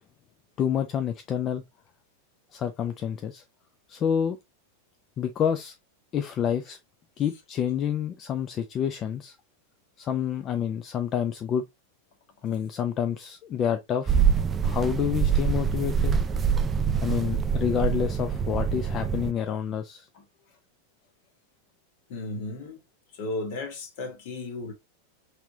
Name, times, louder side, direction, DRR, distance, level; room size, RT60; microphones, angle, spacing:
voice 1, 0.6-1.6 2.5-3.4 3.9-4.4 5.2-5.7 6.1-6.8 7.2-9.4 10.0-11.6 12.4-14.2 14.6-16.2 17.0-20.1, left 8 dB, 30° left, 0.5 m, -28 dB
sound 1, 14.1-19.3, right 7 dB, 20° right, 0.4 m, -25 dB
voice 2, 22.1-22.8 23.1-24.7, left 2 dB, 50° left, 1.5 m, -34 dB
5.7 x 3.4 x 2.7 m
figure-of-eight pair, 90°, 0 cm